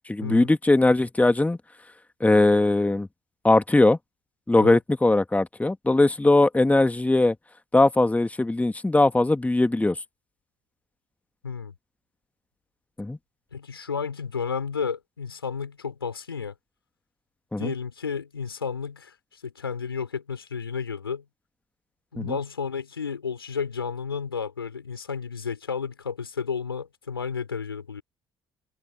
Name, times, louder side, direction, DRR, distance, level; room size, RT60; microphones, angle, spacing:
voice 1, 0.1-1.6 2.2-3.1 3.4-4.0 4.5-7.3 7.7-10.0 13.0-13.2 17.5-17.7 22.2-22.3, left 2 dB, 10° left, 1.8 m, -20 dB
voice 2, 11.4-11.7 13.5-16.5 17.6-21.2 22.1-28.0, left 6 dB, 90° left, 5.5 m, -32 dB
open air
figure-of-eight pair, 55°, 12 cm